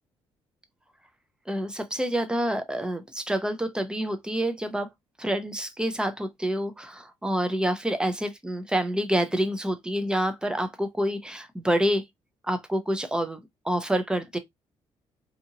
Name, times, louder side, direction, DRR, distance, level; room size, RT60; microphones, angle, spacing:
voice 1, 1.5-4.9 5.2-12.0 12.4-13.4 13.6-14.4, equal, 10° right, 0.4 m, -27 dB
2.7 x 2.5 x 2.7 m
cardioid pair, 125°, 10 cm